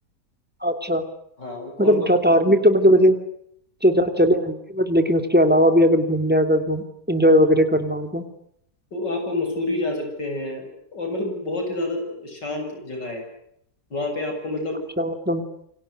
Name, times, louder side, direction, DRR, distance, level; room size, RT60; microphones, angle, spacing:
voice 1, 0.6-1.0 1.8-3.2 3.8-8.2 15.0-15.4, equal, 5° right, 7 dB, 2.9 m, -18 dB
voice 2, 1.4-2.0 8.9-10.7 10.9-13.2 13.9-14.8, left 2 dB, 80° left, 4 dB, 7.9 m, -28 dB
28.5 x 25.5 x 8.1 m, 0.72 s
omnidirectional pair, 1.9 m